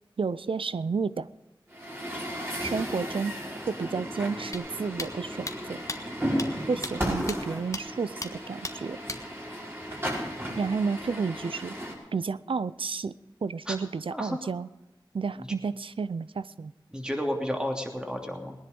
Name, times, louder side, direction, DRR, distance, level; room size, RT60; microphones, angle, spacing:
voice 1, 0.2-1.3 2.6-3.4 3.7-5.8 6.7-9.0 10.6-11.8 12.1-13.1 13.4-14.7 15.1-16.7, right 5 dB, 90° right, 16 dB, 0.5 m, -31 dB
Truck, 1.7-11.9, equal, 25° right, 5.4 m, -34 dB
sound 1, 4.5-4.6 5.0-5.1 5.5-5.6 5.9-6.0 6.4-6.5 6.8-6.9 7.3-7.4 7.7-7.8 8.2-8.3 8.6-8.7 9.1-9.2, left 2 dB, 35° left, 1.5 m, -34 dB
voice 2, 14.1-14.5 15.4-15.5 16.9-18.5, equal, 10° right, 2 dB, 3.0 m, -32 dB
19.5 x 10.5 x 5.4 m, 1.0 s
wide cardioid pair, 55°, 9 cm